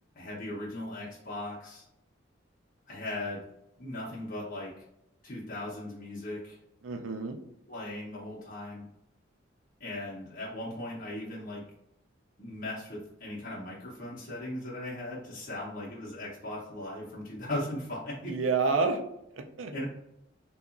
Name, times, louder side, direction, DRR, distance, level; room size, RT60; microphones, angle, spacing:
voice 1, 0.1-1.8 2.9-3.4 3.8-4.7 5.2-6.6 7.7-8.8 9.8-11.6 12.4-18.3 19.7-19.8, left 1 dB, 45° left, -6 dB, 0.7 m, -38 dB
voice 2, 6.8-7.4 18.2-19.0 19.3-19.8, right 4 dB, 85° right, 6 dB, 0.4 m, -29 dB
2.8 x 2.3 x 2.4 m, 0.82 s
head